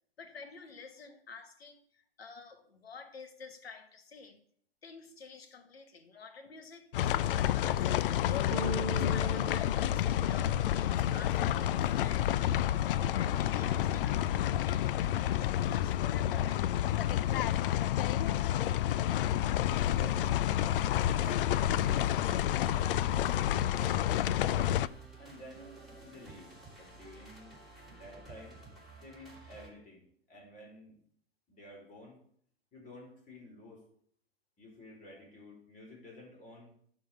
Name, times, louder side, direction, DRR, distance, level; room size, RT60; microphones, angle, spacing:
voice 1, 0.2-4.4 4.8-17.5, left 4 dB, 80° left, 7 dB, 1.5 m, -51 dB
sound 1, 6.9-24.9, left 12 dB, 65° left, 0.5 m, -29 dB
Bass guitar, 8.5-14.8, right 2 dB, 60° right, 1.3 m, -43 dB
voice 2, 19.8-20.4 20.8-22.0 25.2-27.6 27.9-28.6 29.0-30.0 30.3-31.0 31.5-32.2 32.7-33.8 34.6-36.7, left 1 dB, 25° left, 0 dB, 3.7 m, -52 dB
sound 2, 19.8-29.7, right 2 dB, ahead, 4.4 m, -53 dB
11.5 x 3.9 x 6.8 m, 0.63 s
hypercardioid pair, 105°, 30 cm